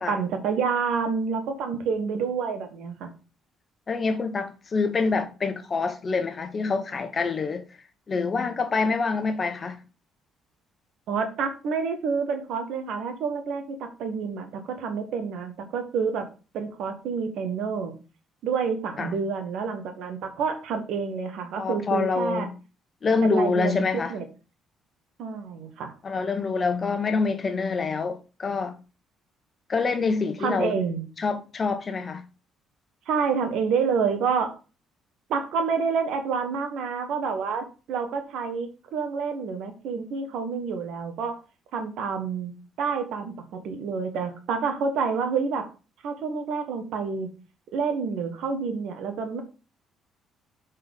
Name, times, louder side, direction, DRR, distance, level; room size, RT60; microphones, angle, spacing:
voice 1, 0.1-3.1 11.1-16.3 16.5-17.9 18.4-22.5 23.2-24.2 25.2-25.9 30.4-31.1 33.1-34.5 35.3-41.4 41.7-45.7 46.0-47.3 47.7-49.4, right 5 dB, 70° right, 1.3 m, -28 dB
voice 2, 3.9-7.6 8.1-9.8 19.0-19.1 21.5-22.5 23.0-24.1 26.0-28.8 29.7-30.8 31.2-32.2, left 4 dB, 40° left, 1.1 m, -26 dB
5.6 x 4.4 x 5.2 m
hypercardioid pair, 55°, 0 cm